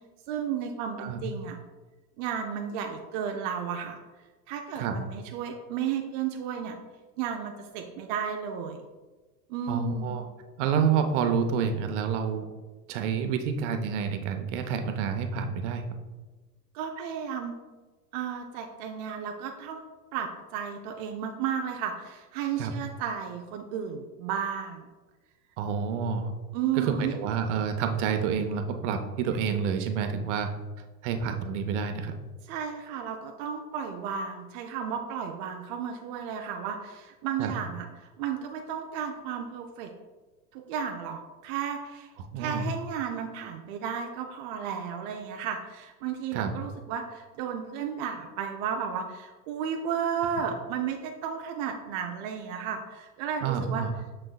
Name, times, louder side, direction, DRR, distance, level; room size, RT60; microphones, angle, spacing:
voice 1, 0.3-1.6 2.2-4.0 4.5-6.8 7.2-8.8 9.5-10.2 16.7-17.5 18.1-19.8 20.1-24.9 26.5-27.2 32.5-39.9 40.5-42.1 42.4-53.8, right 7 dB, 30° right, 3 dB, 0.4 m, -33 dB
voice 2, 9.7-10.2 10.6-12.5 12.9-15.8 22.6-22.7 25.6-26.3 26.7-30.5 31.0-32.2 37.4-37.5 42.2-42.7 46.3-46.5 53.4-53.9, right 6 dB, 45° right, 6 dB, 0.8 m, -28 dB
6.4 x 6.3 x 2.3 m, 1.3 s
hypercardioid pair, 100°, 49 cm